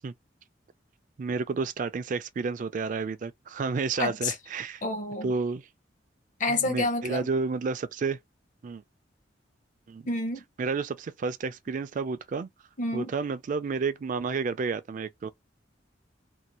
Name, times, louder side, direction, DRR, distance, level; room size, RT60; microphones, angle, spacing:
voice 1, 1.2-4.8 5.2-5.6 6.5-8.2 8.6-8.8 9.9-10.1 10.6-12.5 12.9-15.3, right 4 dB, 45° right, 0.3 m, -31 dB
voice 2, 4.0-4.3 4.8-5.3 6.4-7.3 10.1-10.4 12.8-13.1, left 2 dB, 45° left, 0.7 m, -29 dB
2.6 x 2.1 x 2.9 m
head